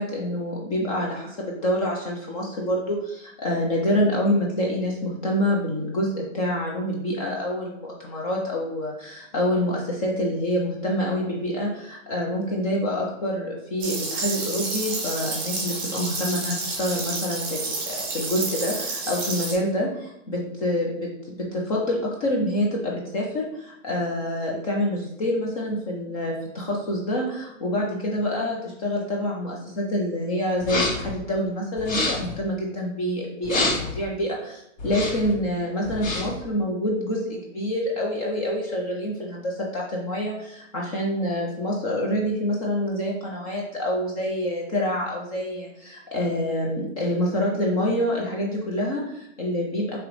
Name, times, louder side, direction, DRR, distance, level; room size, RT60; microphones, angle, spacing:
voice 1, 0.0-50.0, left 1 dB, 30° left, -2 dB, 0.5 m, -27 dB
sound 1, 13.8-19.5, right 3 dB, 20° right, 1.2 m, -30 dB
sound 2, 30.6-31.1 31.8-32.3 33.4-34.0 34.8-35.3 35.8-36.4, left 2 dB, 80° left, 1.5 m, -27 dB
4.8 x 3.0 x 3.1 m, 0.82 s
hypercardioid pair, 155°, 39 cm